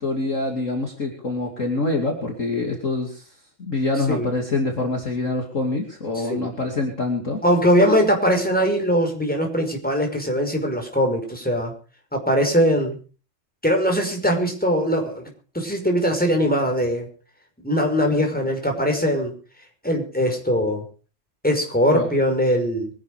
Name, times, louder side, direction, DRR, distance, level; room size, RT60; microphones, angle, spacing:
voice 1, 0.0-7.4 21.9-22.1, left 2 dB, 40° left, 2 dB, 3.1 m, -25 dB
voice 2, 7.4-11.7 12.1-13.0 13.6-15.3 15.5-17.1 17.6-19.3 19.8-20.8 21.4-22.9, equal, 5° left, 3 dB, 5.5 m, -21 dB
24.0 x 11.5 x 5.1 m, 0.39 s
omnidirectional pair, 2.1 m